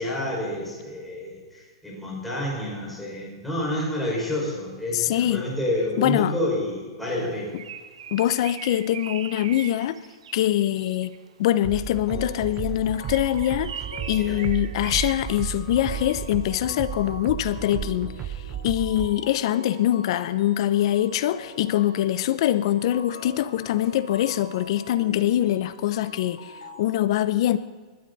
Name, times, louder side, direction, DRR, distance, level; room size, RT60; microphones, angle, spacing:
voice 1, 0.0-7.5 14.2-14.4, left 1 dB, 5° left, 5.8 m, -29 dB
voice 2, 4.9-5.4 6.0-6.3 8.1-10.0 10.3-13.8 14.1-18.1 18.6-26.5 26.8-27.6, left 12 dB, 60° left, 0.8 m, -23 dB
Bird, 7.2-11.3 12.9-16.4, right 8 dB, 80° right, 0.9 m, -41 dB
sound 1, 11.6-19.1, right 10 dB, 30° right, 0.6 m, -34 dB
sound 2, 12.1-26.9, left 2 dB, 75° left, 4.9 m, -44 dB
20.5 x 12.5 x 4.2 m
hypercardioid pair, 135°, 3 cm